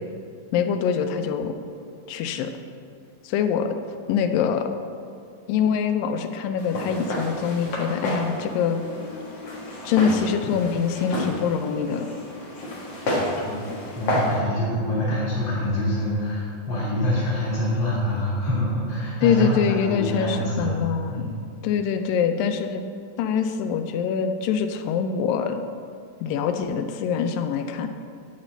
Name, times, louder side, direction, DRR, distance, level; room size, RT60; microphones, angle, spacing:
voice 1, 0.5-1.5 2.1-2.5 3.2-3.8 4.1-4.7 5.5-8.8 9.9-12.1 19.2-21.3 21.6-22.8 23.2-25.6 26.2-27.9, left 6 dB, 90° left, 7 dB, 2.3 m, -24 dB
Walk footsteps, 6.6-14.4, left 1 dB, 55° left, 2.2 m, -30 dB
voice 2, 13.9-20.8 21.1-21.3, left 1 dB, 30° left, -11 dB, 2.4 m, -26 dB
10.5 x 4.2 x 7.7 m, 2.4 s
omnidirectional pair, 3.9 m